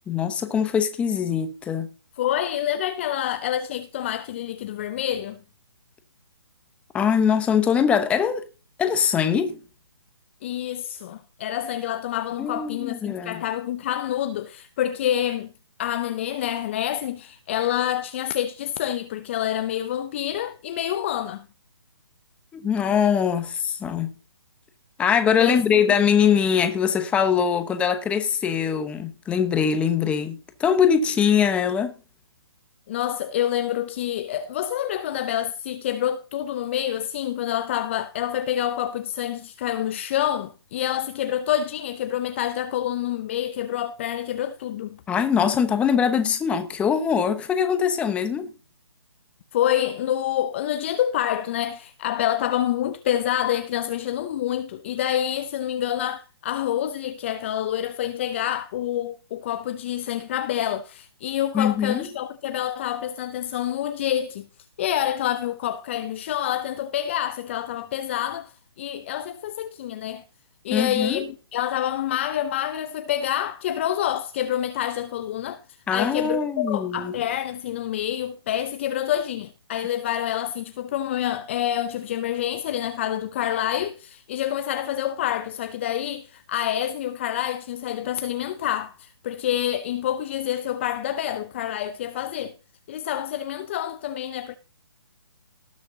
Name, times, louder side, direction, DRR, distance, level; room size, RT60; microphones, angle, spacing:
voice 1, 0.1-1.9 6.9-8.4 8.8-9.6 12.4-13.4 22.5-24.2 25.0-31.9 45.1-48.5 61.5-62.1 70.7-71.2 75.9-77.1, left 7 dB, 10° left, 0.9 m, -22 dB
voice 2, 2.2-5.4 10.4-15.5 15.8-21.4 25.4-25.6 32.9-45.0 49.5-64.5 64.8-70.2 70.6-75.6 75.9-92.5 92.9-94.5, left 11 dB, 25° left, 0.5 m, -27 dB
18.5 x 6.4 x 2.8 m
hypercardioid pair, 155°, 14 cm